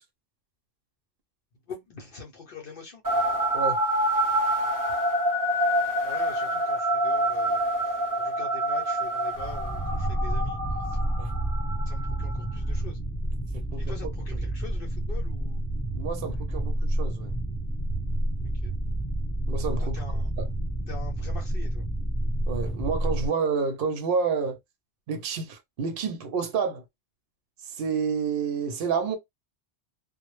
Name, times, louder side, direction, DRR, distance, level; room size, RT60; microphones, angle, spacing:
voice 1, 1.7-3.0 6.0-7.6 8.2-10.6 10.9-11.0 11.9-13.0 13.8-15.6 18.6-18.7 19.8-20.3 20.9-21.8, left 5 dB, 60° left, 0.7 m, -44 dB
sound 1, 3.0-12.5, right 1 dB, 25° right, 0.6 m, -27 dB
sound 2, 9.3-23.3, right 1 dB, 20° left, 0.7 m, -29 dB
voice 2, 15.9-17.3 19.5-20.5 22.5-24.6 25.1-26.8 27.7-29.2, right 5 dB, 60° right, 0.7 m, -29 dB
2.0 x 2.0 x 3.0 m
omnidirectional pair, 1.2 m